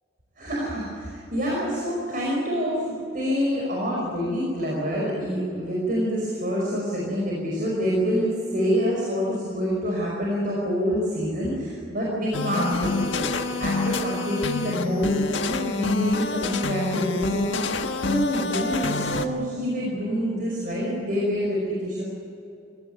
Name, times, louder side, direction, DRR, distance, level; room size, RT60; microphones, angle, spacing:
voice 1, 0.4-22.0, equal, 45° right, -4 dB, 5.3 m, -27 dB
sound 1, 12.3-19.3, left 3 dB, 70° left, 1.5 m, -27 dB
24.0 x 17.5 x 9.3 m, 2.7 s
head